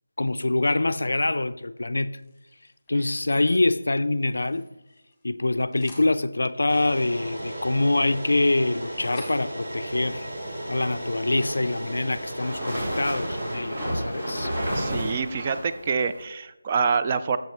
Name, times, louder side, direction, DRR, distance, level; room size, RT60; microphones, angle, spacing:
voice 1, 0.2-2.2 2.9-4.7 5.2-10.3 10.7-14.5, left 2 dB, 70° left, 0.4 m, -25 dB
sound 1, 2.2-3.7 4.0-5.3 5.5-6.1 7.0-12.0 12.3-12.5 12.9-14.4, left 2 dB, 10° left, 1.6 m, -51 dB
sound 2, 6.7-13.6, right 1 dB, 65° right, 2.7 m, -35 dB
sound 3, 11.1-16.2, equal, 45° right, 2.4 m, -31 dB
voice 2, 14.7-17.4, right 5 dB, 25° right, 0.3 m, -26 dB
7.3 x 7.0 x 3.0 m
figure-of-eight pair, 165°, 0 cm